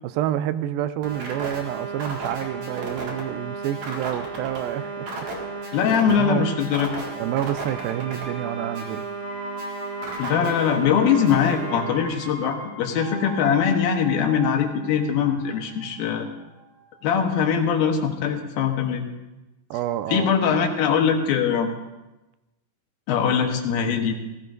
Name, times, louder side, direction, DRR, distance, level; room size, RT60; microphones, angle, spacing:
voice 1, 0.0-5.8 6.1-6.5 7.2-9.0 19.7-20.3, right 12 dB, 85° right, 13 dB, 2.3 m, -28 dB
sound 1, 1.0-12.0, right 3 dB, 55° right, 3.0 m, -33 dB
voice 2, 5.7-7.1 10.2-16.3 17.0-19.0 20.1-21.7 23.1-24.2, left 7 dB, 85° left, 4 dB, 2.9 m, -22 dB
sound 2, 7.6-17.3 17.6-17.7, right 2 dB, 10° right, 2.9 m, -38 dB
17.5 x 15.0 x 2.6 m, 1.0 s
omnidirectional pair, 4.3 m